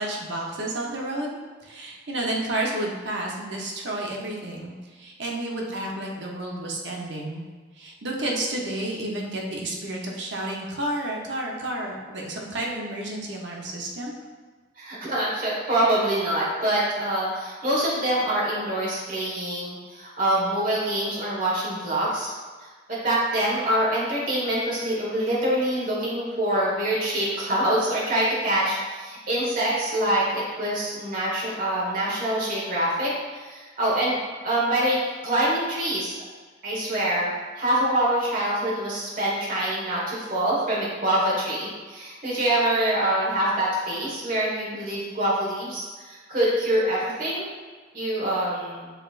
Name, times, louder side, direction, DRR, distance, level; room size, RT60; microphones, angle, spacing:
voice 1, 0.0-7.4 7.8-14.1, right 1 dB, 65° right, -2 dB, 0.8 m, -31 dB
voice 2, 14.8-22.3 22.6-35.0 35.2-36.1 36.6-37.3 37.5-47.4 47.9-48.9, right 1 dB, 45° right, -6 dB, 1.4 m, -25 dB
6.6 x 3.2 x 2.5 m, 1.4 s
head